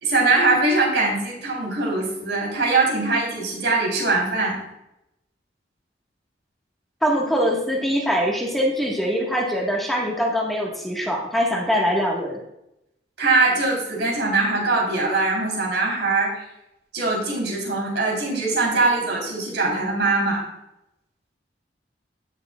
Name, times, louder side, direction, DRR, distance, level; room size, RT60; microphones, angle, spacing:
voice 1, 0.0-4.6 13.2-16.3 16.9-20.4, right 3 dB, 80° right, -1 dB, 3.7 m, -22 dB
voice 2, 7.0-12.4, equal, ahead, -2 dB, 1.5 m, -23 dB
16.5 x 6.7 x 2.4 m, 0.85 s
head